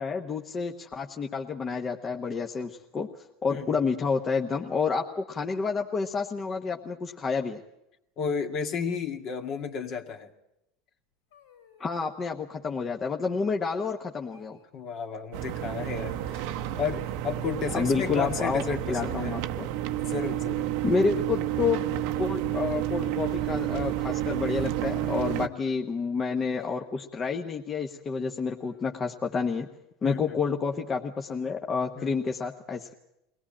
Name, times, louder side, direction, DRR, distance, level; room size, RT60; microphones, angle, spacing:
voice 1, 0.0-7.6 11.8-14.6 17.7-19.7 20.8-21.8 22.2-29.7 30.0-32.9, left 5 dB, 30° left, 3 dB, 1.2 m, -29 dB
voice 2, 8.2-10.3 14.7-19.3 20.0-20.7 25.4-25.6 30.0-30.4 32.0-32.2, left 6 dB, 50° left, 6 dB, 2.0 m, -33 dB
sound 1, 11.3-12.2 13.4-13.8 14.3-14.6 16.1-16.7 18.2-18.8 20.7-20.8 21.6-22.6 24.5-25.6 26.6-27.2 28.4-29.0, left 8 dB, 85° left, 4.0 m, -50 dB
sound 2, 15.3-25.5, right 13 dB, 65° right, 0.8 m, -30 dB
22.5 x 18.0 x 8.7 m, 0.86 s
supercardioid pair, 110°, 0 cm